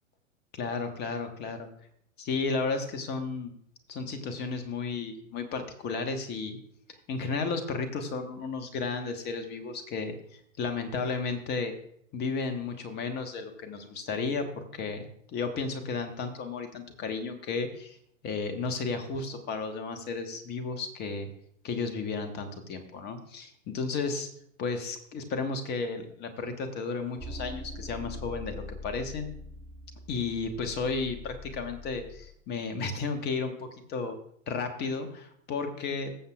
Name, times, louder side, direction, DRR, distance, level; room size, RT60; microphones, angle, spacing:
voice 1, 0.5-1.7 2.2-3.5 3.9-6.6 7.1-11.7 12.1-18.0 18.2-21.3 21.6-24.3 24.6-29.3 30.1-34.2 34.5-36.2, left 4 dB, 25° left, 7 dB, 1.3 m, -33 dB
sound 1, 27.2-32.3, left 1 dB, ahead, 1.9 m, -43 dB
20.5 x 7.3 x 2.4 m, 0.68 s
figure-of-eight pair, 110°, 41 cm